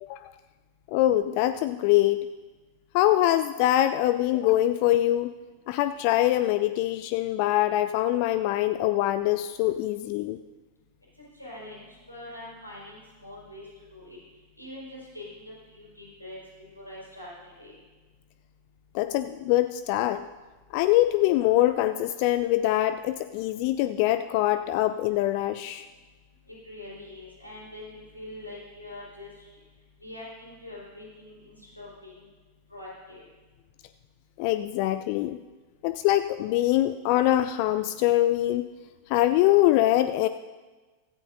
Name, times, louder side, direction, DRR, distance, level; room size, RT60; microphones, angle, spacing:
voice 1, 0.9-2.3 2.9-5.3 5.7-10.4 18.9-20.2 20.7-25.9 34.4-35.4 35.8-38.7 39.1-40.3, left 14 dB, 45° left, 12 dB, 0.3 m, -23 dB
voice 2, 11.3-14.2 14.6-17.8 26.5-29.5 30.0-32.2 32.7-33.2, left 1 dB, 85° left, -6 dB, 4.7 m, -44 dB
16.5 x 14.0 x 2.6 m, 1.3 s
figure-of-eight pair, 90°, 0 cm